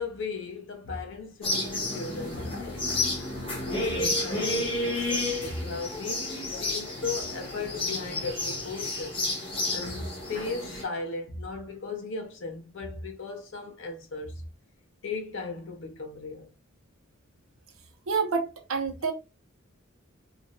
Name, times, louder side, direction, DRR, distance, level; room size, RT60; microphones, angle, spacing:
voice 1, 0.0-2.9 3.6-9.2 9.7-14.4 15.0-16.5, left 4 dB, 65° left, 0.6 m, -36 dB
sound 1, 1.4-10.8, left 2 dB, 25° left, 0.7 m, -31 dB
voice 2, 18.1-19.1, right 5 dB, 85° right, 0.6 m, -28 dB
2.5 x 2.0 x 2.6 m
head